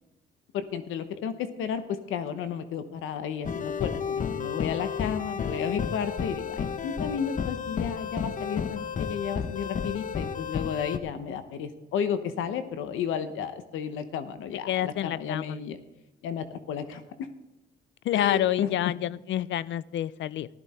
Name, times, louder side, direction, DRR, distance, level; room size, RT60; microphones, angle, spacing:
voice 1, 0.5-15.8 16.2-17.3 18.1-18.9, left 8 dB, 90° left, 10 dB, 1.0 m, -33 dB
sound 1, 3.4-11.0, left 7 dB, 40° left, 0.9 m, -32 dB
voice 2, 14.7-15.6 18.0-20.5, left 12 dB, 70° left, 20 dB, 0.5 m, -28 dB
15.5 x 13.0 x 4.3 m, 0.98 s
cardioid pair, 90°, 20 cm